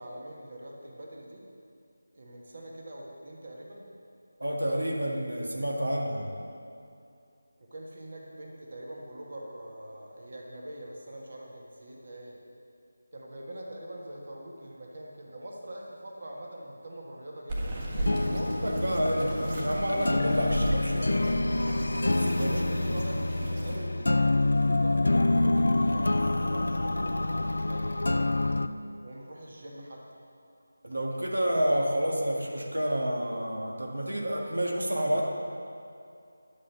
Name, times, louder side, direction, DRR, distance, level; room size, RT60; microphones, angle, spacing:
voice 1, 0.0-1.4 2.1-3.9 7.6-12.4 13.1-18.2 22.4-28.3 29.0-30.1, right 1 dB, 55° right, -1 dB, 1.5 m, -43 dB
voice 2, 4.4-6.3 18.2-21.3 22.1-22.6 22.9-23.1 30.8-35.3, equal, 80° right, 0 dB, 1.6 m, -29 dB
Bird vocalization bird call bird song, 17.5-23.8, right 1 dB, 30° right, 1.5 m, -35 dB
sound 1, 17.9-28.7, left 2 dB, 70° left, 0.4 m, -27 dB
11.0 x 6.1 x 7.0 m, 2.6 s
figure-of-eight pair, 165°, 0 cm